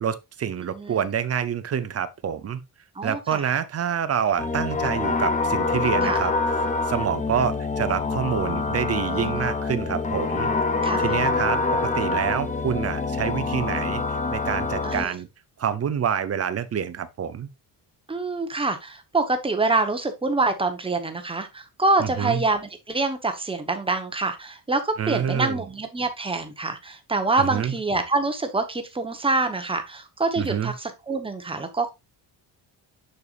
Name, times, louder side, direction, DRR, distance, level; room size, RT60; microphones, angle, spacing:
voice 1, 0.0-2.6 3.0-6.3 6.9-10.5 11.0-11.6 11.9-15.3 15.6-17.5 22.0-22.4 25.0-25.6 27.4-27.8 30.4-30.7, right 8 dB, 35° right, 0.7 m, -27 dB
voice 2, 0.7-1.0 3.0-3.4 6.0-6.2 9.1-9.5 10.8-11.1 14.8-15.1 18.1-31.9, right 3 dB, 10° right, 1.0 m, -26 dB
sound 1, 4.4-15.0, left 3 dB, 20° left, 0.6 m, -26 dB
6.9 x 6.7 x 2.5 m
cardioid pair, 170°, 43 cm